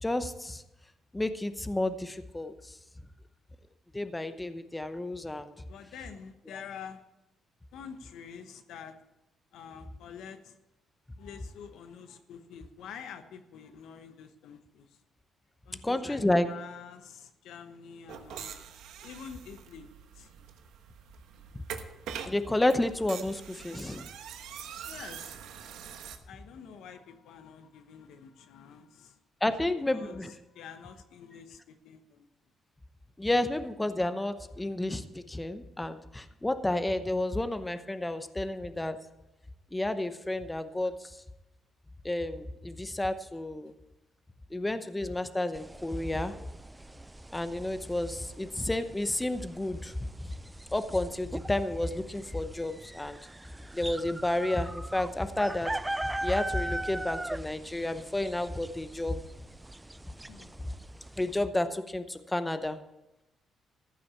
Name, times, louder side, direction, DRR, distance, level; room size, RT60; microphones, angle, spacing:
voice 1, 0.0-0.6 1.1-2.8 3.9-5.5 15.8-16.5 22.3-24.1 29.4-30.3 33.2-39.0 39.7-41.1 42.0-43.7 44.5-46.3 47.3-50.3 50.7-53.2 53.7-55.7 56.2-59.2 61.2-62.8, left 1 dB, 15° left, 10 dB, 0.8 m, -31 dB
voice 2, 5.6-7.0 7.7-9.0 9.5-10.6 11.2-15.0 15.6-18.6 19.0-20.3 24.5-25.4 26.3-29.2 29.4-32.3 43.6-43.7 60.3-60.6, left 7 dB, 80° left, 8 dB, 1.1 m, -47 dB
sound 1, 18.1-26.2, right 8 dB, 85° right, 1.1 m, -44 dB
sound 2, 45.5-61.4, right 1 dB, 10° right, 0.4 m, -41 dB
14.5 x 6.1 x 8.2 m, 0.94 s
cardioid pair, 90°, 0 cm